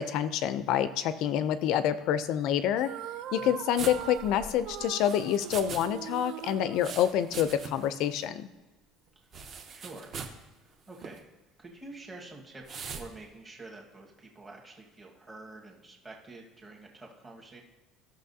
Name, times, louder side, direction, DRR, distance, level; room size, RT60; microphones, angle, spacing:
voice 1, 0.0-2.9 3.3-8.5, left 10 dB, 55° left, 13 dB, 0.4 m, -27 dB
sound 1, 2.8-7.6, right 11 dB, 60° right, 0.5 m, -41 dB
sound 2, 3.8-5.9 6.1-7.9 8.2-8.3 9.3-10.4 10.9-11.2 12.7-13.1, right 5 dB, 30° right, 0.8 m, -41 dB
voice 2, 9.7-10.2 10.9-11.3 11.6-17.6, right 2 dB, 15° right, -1 dB, 1.4 m, -47 dB
13.5 x 6.2 x 2.7 m, 1.1 s
cardioid pair, 170°, 0 cm